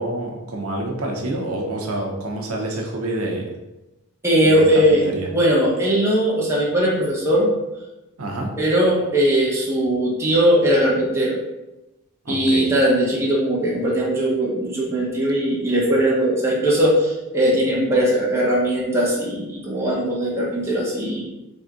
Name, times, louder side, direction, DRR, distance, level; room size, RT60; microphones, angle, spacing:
voice 1, 0.0-3.5 4.4-4.6 5.1-5.3 8.2-8.5 12.2-12.7, right 1 dB, 75° right, 0 dB, 0.8 m, -27 dB
voice 2, 4.2-7.5 8.6-11.4 12.3-21.3, right 1 dB, 10° right, -5 dB, 1.0 m, -19 dB
4.0 x 3.4 x 3.7 m, 0.98 s
head